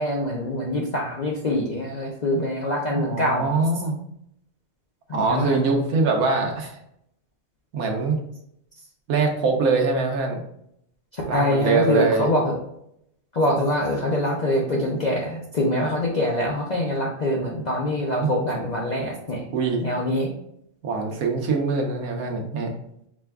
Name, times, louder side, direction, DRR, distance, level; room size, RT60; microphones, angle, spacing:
voice 1, 0.0-3.6 5.1-5.6 11.1-12.5 13.3-19.5 19.8-20.3, left 1 dB, 55° left, -3 dB, 0.4 m, -24 dB
voice 2, 2.9-4.0 5.1-6.8 7.7-8.2 9.1-10.4 11.3-12.3 18.2-18.3 19.5-19.8 20.8-22.7, right 4 dB, 85° right, 2 dB, 1.3 m, -23 dB
4.8 x 2.3 x 3.5 m, 0.75 s
omnidirectional pair, 1.5 m